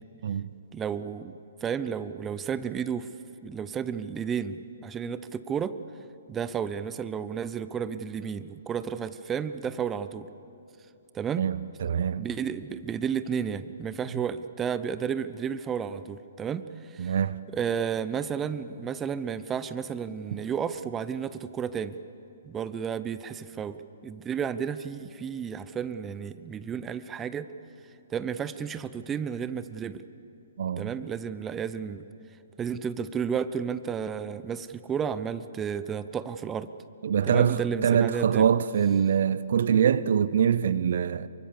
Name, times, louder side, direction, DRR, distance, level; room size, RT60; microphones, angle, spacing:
voice 1, 0.7-1.3 1.6-3.1 3.4-5.8 6.3-10.3 11.1-11.5 12.2-17.2 17.5-22.0 22.4-27.5 28.1-30.0 30.8-32.1 32.6-36.7 37.2-38.5, right 7 dB, 15° right, 0.8 m, -32 dB
voice 2, 11.4-12.3 17.0-17.4 30.6-30.9 37.0-41.3, right 8 dB, 60° right, 0.6 m, -24 dB
26.0 x 24.0 x 6.9 m
figure-of-eight pair, 125°, 0 cm